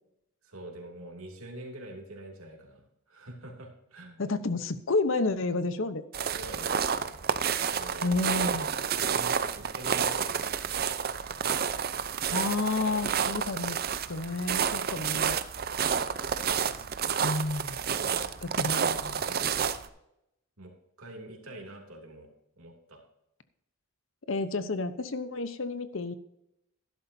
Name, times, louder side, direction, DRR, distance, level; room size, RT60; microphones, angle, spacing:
voice 1, 0.4-4.3 6.2-7.2 7.6-8.1 8.7-10.8 15.7-16.2 18.0-18.3 19.2-19.7 20.6-20.7 21.0-22.3 22.6-23.0, right 1 dB, 90° right, 1 dB, 2.8 m, -45 dB
voice 2, 4.2-6.0 8.0-8.7 12.3-13.8 14.1-15.4 17.2-17.8 18.4-19.2 24.3-26.1, left 3 dB, 65° left, 12 dB, 0.8 m, -30 dB
sound 1, 6.1-19.9, right 7 dB, 45° right, 0.6 m, -30 dB
12.5 x 11.5 x 2.7 m, 0.82 s
head